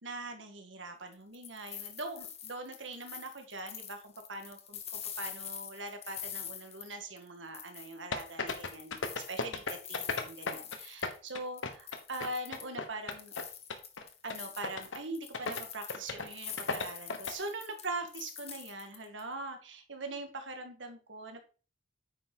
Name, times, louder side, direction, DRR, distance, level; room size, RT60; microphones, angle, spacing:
voice 1, 0.0-9.0 9.3-13.3 14.2-21.5, right 2 dB, 75° right, 5 dB, 1.9 m, -42 dB
sound 1, 1.1-7.3 7.5-11.3 11.6-12.8 13.1-19.2, left 8 dB, 35° left, 1.2 m, -45 dB
sound 2, 8.1-10.8 11.0-13.4 13.7-14.0 14.3-14.4 14.6-15.0 15.3-15.6 15.9-16.3 16.6-17.3, left 4 dB, 80° left, 1.3 m, -35 dB
9.2 x 6.0 x 3.8 m, 0.36 s
head